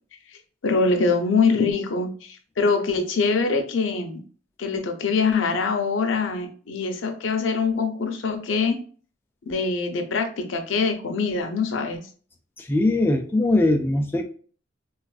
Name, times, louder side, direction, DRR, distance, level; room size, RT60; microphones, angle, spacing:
voice 1, 0.6-4.2 4.6-8.8 9.5-12.0, left 4 dB, 85° left, 5 dB, 0.6 m, -24 dB
voice 2, 12.6-14.2, left 2 dB, 10° left, 4 dB, 0.3 m, -21 dB
3.4 x 2.4 x 2.3 m, 0.42 s
head